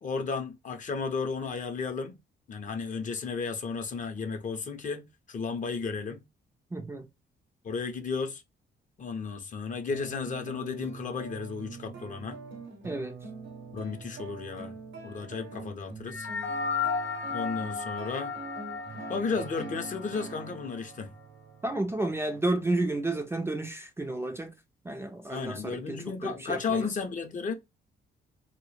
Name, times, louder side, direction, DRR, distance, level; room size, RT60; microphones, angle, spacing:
voice 1, 0.0-2.2 2.5-6.2 7.6-8.4 9.0-12.4 13.7-14.8 15.0-16.3 17.3-18.3 19.1-21.1 25.3-27.5, left 5 dB, 40° left, 0.6 m, -34 dB
voice 2, 6.7-7.0 12.8-13.2 21.6-24.5 24.9-26.8, right 2 dB, 15° right, 0.4 m, -31 dB
sound 1, 9.9-22.6, right 4 dB, 70° right, 0.7 m, -44 dB
sound 2, 16.1-20.7, left 5 dB, 85° left, 0.5 m, -34 dB
2.1 x 2.0 x 3.0 m
cardioid pair, 90°, 20 cm